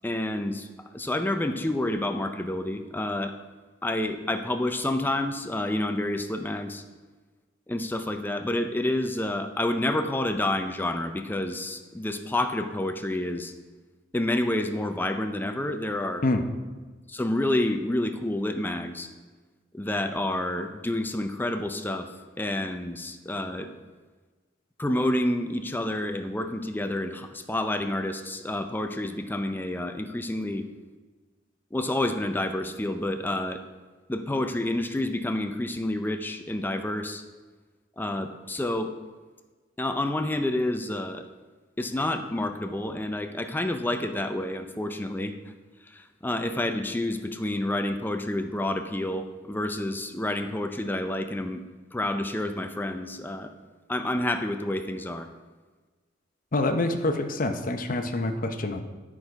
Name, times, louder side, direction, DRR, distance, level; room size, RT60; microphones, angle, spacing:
voice 1, 0.0-0.7 0.9-3.4 3.8-6.8 7.7-13.5 14.1-16.2 17.1-19.1 19.7-22.1 22.4-23.7 24.8-30.6 31.7-33.6 34.1-37.2 38.0-38.9 39.8-41.3 41.8-45.4 45.9-51.6 51.9-53.5 53.9-55.3, left 1 dB, 10° left, 7 dB, 0.5 m, -29 dB
voice 2, 56.5-58.8, left 2 dB, 45° left, 6 dB, 0.8 m, -26 dB
10.5 x 6.2 x 4.8 m, 1.3 s
head